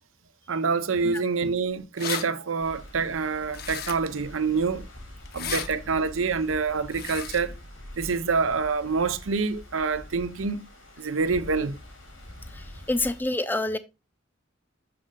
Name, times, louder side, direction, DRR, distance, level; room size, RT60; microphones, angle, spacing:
voice 1, 0.5-4.9 5.3-7.5 8.0-10.7 11.0-11.8, right 4 dB, 90° right, 0.7 m, -26 dB
sound 1, 1.5-1.6 1.8-2.2 3.5-4.2 5.3-5.7 6.9-7.4, left 7 dB, 50° left, 0.8 m, -33 dB
sound 2, 2.6-13.2, left 1 dB, 85° left, 2.8 m, -44 dB
voice 2, 12.5-13.8, left 2 dB, 10° left, 0.5 m, -28 dB
6.2 x 6.0 x 3.8 m
head